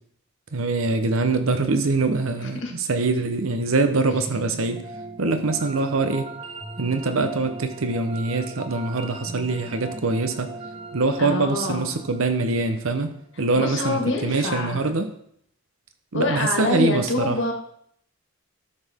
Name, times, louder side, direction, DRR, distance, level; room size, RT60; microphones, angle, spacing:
voice 1, 0.5-4.8 5.2-6.3 6.8-10.5 10.9-13.1 13.4-15.1 16.1-17.4, right 3 dB, 75° right, 8 dB, 0.8 m, -23 dB
voice 2, 2.4-2.7 11.2-11.9 13.6-14.8 16.1-17.5, left 2 dB, 60° left, 1 dB, 1.7 m, -26 dB
sound 1, 4.1-13.2, right 2 dB, 25° right, 0.8 m, -39 dB
12.5 x 6.5 x 3.6 m, 0.68 s
head